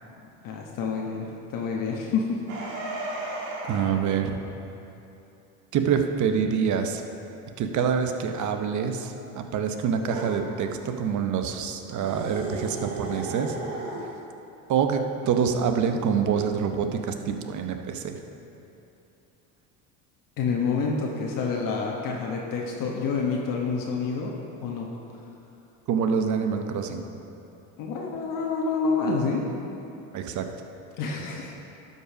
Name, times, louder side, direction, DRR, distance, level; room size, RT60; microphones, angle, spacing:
voice 1, 0.4-2.4 20.4-24.3 24.6-24.9 27.8-29.4 31.0-31.5, left 4 dB, 55° left, -1 dB, 1.2 m, -28 dB
sound 1, 2.5-4.0 10.1-10.4 12.0-14.1, right 2 dB, 75° right, 1.8 m, -34 dB
voice 2, 3.7-4.4 5.7-7.0 7.6-13.6 14.7-18.2 25.9-27.0 30.1-30.5, right 7 dB, 50° right, 6 dB, 0.9 m, -26 dB
12.0 x 5.5 x 5.0 m, 2.9 s
supercardioid pair, 95°, 39 cm